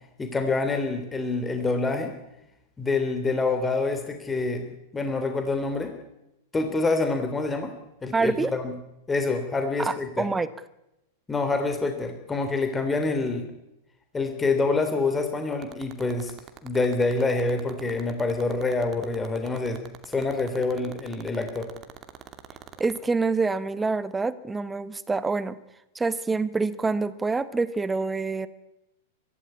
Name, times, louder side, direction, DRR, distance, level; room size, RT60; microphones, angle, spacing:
voice 1, 0.2-2.1 2.8-5.9 6.5-7.7 8.0-8.7 9.1-10.2 11.3-13.5 14.1-16.3 16.6-19.8 20.0-21.7, left 3 dB, 15° left, 6 dB, 3.0 m, -26 dB
voice 2, 8.1-8.5 9.8-10.5 22.8-25.6 25.9-28.5, right 4 dB, 10° right, 15 dB, 1.3 m, -26 dB
sound 1, 15.5-23.0, right 11 dB, 30° right, 2.5 m, -42 dB
24.0 x 15.5 x 9.7 m, 0.89 s
figure-of-eight pair, 95°, 0 cm